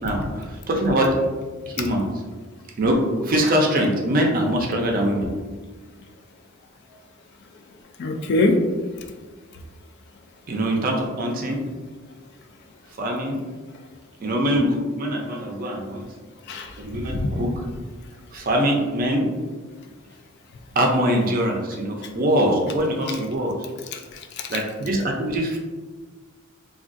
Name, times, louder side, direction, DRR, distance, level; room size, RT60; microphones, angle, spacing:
voice 1, 0.0-1.2 1.7-2.0 2.8-5.3 10.5-11.6 13.0-13.4 14.2-16.0 16.8-17.5 18.3-19.3 20.8-23.5 24.5-25.6, equal, 45° right, 1 dB, 0.5 m, -23 dB
voice 2, 8.0-8.6 16.5-16.9 17.1-17.3 23.1-23.2 23.9-24.6, left 2 dB, 55° left, 5 dB, 0.3 m, -24 dB
3.5 x 2.3 x 2.5 m, 1.4 s
head